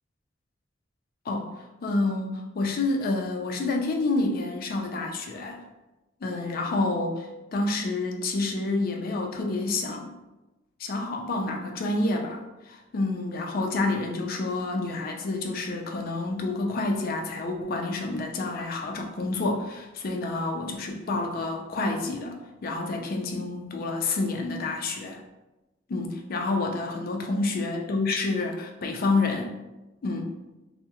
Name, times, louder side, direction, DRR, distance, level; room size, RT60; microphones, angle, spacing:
voice 1, 1.8-5.6 6.2-10.1 10.8-25.2 25.9-29.5 30.0-30.3, left 2 dB, 50° left, 3 dB, 0.4 m, -28 dB
2.3 x 2.0 x 2.8 m, 1.0 s
head